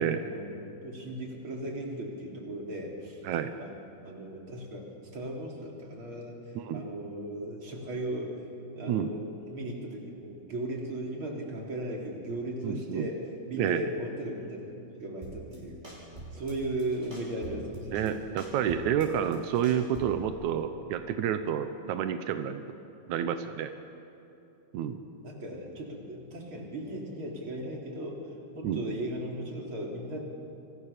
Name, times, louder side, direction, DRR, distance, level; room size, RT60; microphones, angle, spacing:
voice 1, 0.1-3.2 3.6-3.7 4.0-4.9 5.1-8.4 8.7-9.2 9.5-13.2 13.5-14.7 15.0-18.0 25.2-28.2 28.5-30.2, right 1 dB, 30° right, -1 dB, 4.0 m, -37 dB
voice 2, 12.6-13.1 13.6-13.9 17.9-22.6 23.1-23.7 24.7-25.0 28.6-28.8, right 9 dB, 85° right, 8 dB, 1.7 m, -29 dB
sound 1, 15.2-15.6 15.8-16.5 16.8-18.1 18.4-20.3, right 1 dB, 10° right, 6.6 m, -44 dB
29.5 x 24.5 x 6.8 m, 2.9 s
omnidirectional pair, 4.7 m